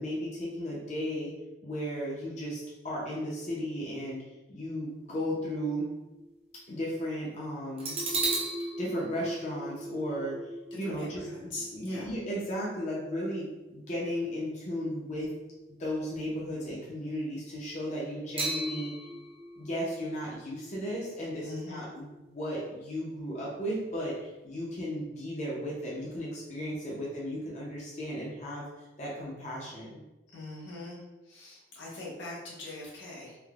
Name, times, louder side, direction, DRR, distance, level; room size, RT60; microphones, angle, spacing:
voice 1, 0.0-1.3 1.6-4.2 4.5-5.9 6.7-8.0 8.8-10.4 10.7-15.3 15.8-18.9 19.6-28.6 29.0-30.0, equal, 40° left, -5 dB, 0.5 m, -35 dB
sound 1, 4.8-6.3 6.8-6.9 7.8-15.2 15.6-15.7 18.4-22.2 22.5-22.6, right 2 dB, 30° right, 0.5 m, -38 dB
voice 2, 10.7-12.1 21.4-21.8 30.3-33.4, left 2 dB, 80° left, -5 dB, 0.9 m, -42 dB
3.2 x 2.0 x 2.3 m, 1.1 s
head